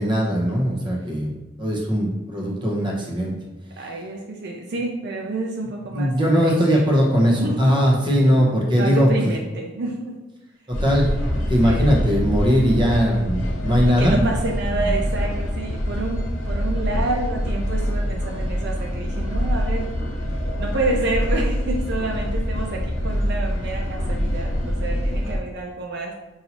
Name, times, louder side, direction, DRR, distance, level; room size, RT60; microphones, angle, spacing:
voice 1, 0.0-1.3 1.6-3.3 5.9-9.3 10.7-14.3 14.8-14.9, equal, 25° right, -2 dB, 0.8 m, -20 dB
voice 2, 3.8-6.1 6.4-6.9 7.3-7.7 8.3-8.4 8.8-10.2 11.6-11.9 13.9-19.9 20.6-26.1, right 2 dB, 60° right, 1 dB, 0.5 m, -28 dB
sound 1, 10.7-25.4, equal, 85° left, 0.9 m, -25 dB
5.6 x 2.7 x 2.9 m, 1.1 s
head